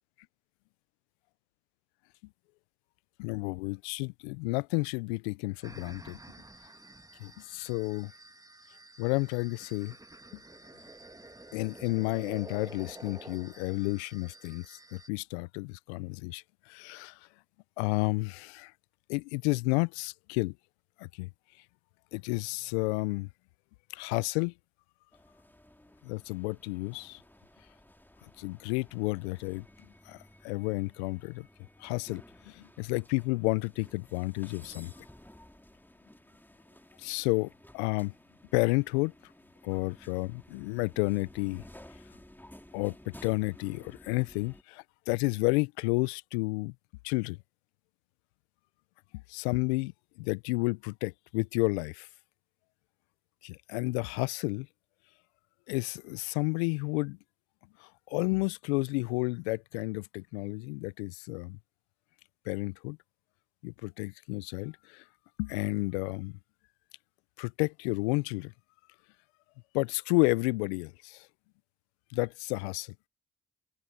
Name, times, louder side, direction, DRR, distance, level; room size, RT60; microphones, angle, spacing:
voice 1, 3.2-6.2 7.2-8.1 9.0-10.0 11.5-17.2 17.8-18.7 19.1-20.5 21.0-21.3 22.1-23.3 23.9-24.5 26.0-27.2 28.4-29.7 30.1-30.2 30.4-31.5 31.8-34.9 37.0-38.1 38.5-39.1 39.6-41.6 42.7-46.7 47.0-47.4 49.3-49.9 50.2-52.1 53.4-54.7 55.7-57.2 57.8-61.6 62.5-63.0 63.6-65.0 65.4-66.4 67.4-68.5 69.7-71.3 72.1-72.9, left 27 dB, 85° left, 0.6 m, -31 dB
sound 1, 5.6-15.1, right 2 dB, 10° right, 1.4 m, -50 dB
sound 2, 25.1-44.6, left 1 dB, 5° left, 2.6 m, -55 dB
open air
hypercardioid pair, 45°, 32 cm